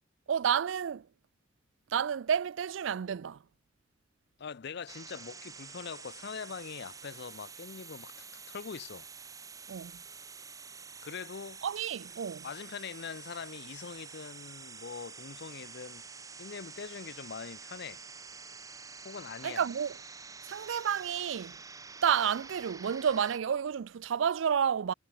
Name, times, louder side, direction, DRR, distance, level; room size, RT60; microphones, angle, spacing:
voice 1, 0.3-1.1 1.9-3.4 9.7-10.0 11.6-12.5 19.4-20.0 20.4-21.6 22.0-24.9, right 8 dB, 70° right, 0.4 m, -30 dB
voice 2, 4.4-9.1 11.0-11.6 12.4-16.0 16.4-18.0 19.0-19.7, left 6 dB, 60° left, 0.6 m, -43 dB
sound 1, 4.9-23.4, right 5 dB, 15° right, 0.9 m, -48 dB
head